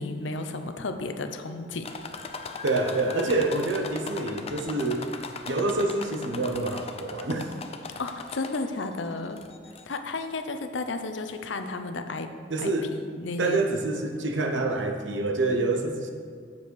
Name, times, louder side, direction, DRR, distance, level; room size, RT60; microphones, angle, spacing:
voice 1, 0.0-1.8 8.0-9.4 9.8-12.3 12.6-13.6, left 3 dB, 75° left, 7 dB, 0.7 m, -33 dB
sound 1, 1.8-8.9 9.4-10.0 10.8-10.9 11.3-11.4, left 4 dB, 35° left, 0.5 m, -39 dB
voice 2, 2.6-5.1 5.4-7.5 12.5-12.9 13.4-16.1, right 2 dB, 75° right, 4 dB, 1.0 m, -27 dB
9.4 x 7.1 x 4.7 m, 2.2 s
head